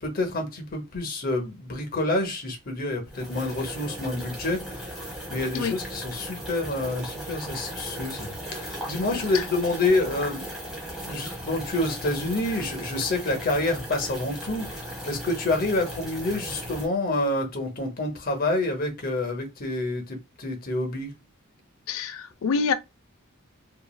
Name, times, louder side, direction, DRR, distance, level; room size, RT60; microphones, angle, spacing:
voice 1, 0.0-5.0 5.3-10.4 10.9-21.1, left 2 dB, 45° left, 0.7 m, -28 dB
sound 1, 3.1-16.9, equal, ahead, 1.0 m, -37 dB
voice 2, 21.9-22.7, left 5 dB, 75° left, 0.4 m, -26 dB
3.1 x 2.3 x 2.2 m
head